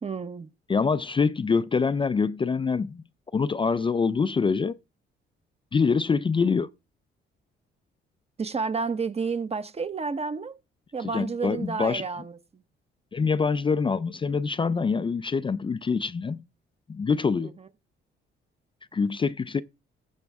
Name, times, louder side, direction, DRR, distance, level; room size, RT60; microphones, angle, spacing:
voice 1, 0.0-0.5 8.4-10.6 10.9-12.6 17.4-17.7, right 4 dB, 30° right, 0.9 m, -31 dB
voice 2, 0.7-3.0 3.3-4.8 5.7-6.7 11.1-12.0 13.1-16.4 16.9-17.5 18.9-19.6, left 5 dB, 25° left, 0.5 m, -25 dB
15.0 x 6.4 x 3.5 m
cardioid pair, 90°, 20 cm